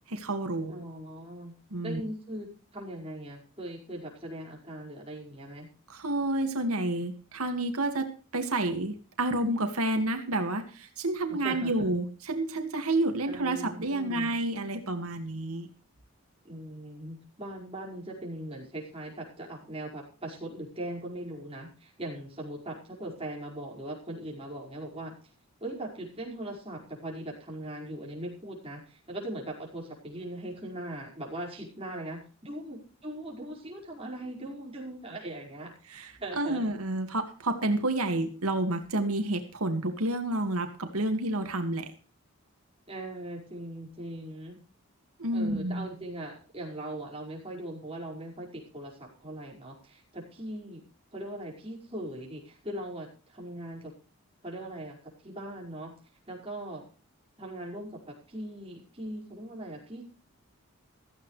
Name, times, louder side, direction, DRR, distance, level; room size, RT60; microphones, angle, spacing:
voice 1, 0.1-0.8 1.7-2.0 5.9-15.7 35.9-41.9 45.2-45.9, right 2 dB, 85° right, 6 dB, 2.0 m, -30 dB
voice 2, 0.7-1.5 1.8-5.7 11.3-11.9 13.3-14.3 16.4-25.1 25.6-35.7 36.2-36.6 42.9-44.6 45.3-50.8 51.1-53.9 54.4-55.9 56.3-56.8 57.4-60.0, right 1 dB, 25° right, -2 dB, 5.1 m, -40 dB
15.5 x 15.0 x 3.2 m, 0.37 s
head